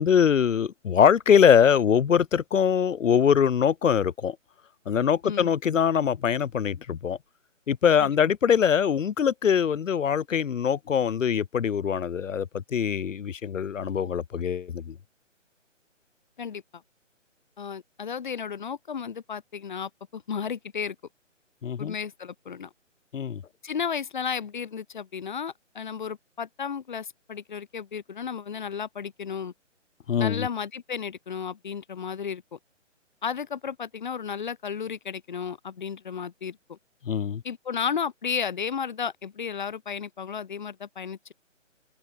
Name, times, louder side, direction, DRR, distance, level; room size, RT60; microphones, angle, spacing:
voice 1, 0.0-4.4 4.9-7.2 7.7-15.0 21.6-21.9 23.1-23.4 30.1-30.5 37.0-37.4, left 7 dB, 75° left, 0.8 m, -23 dB
voice 2, 17.6-21.0 21.8-22.7 23.6-29.5 30.2-32.6 33.2-36.8 37.4-41.3, left 7 dB, 40° left, 2.2 m, -33 dB
open air
hypercardioid pair, 170°, 38 cm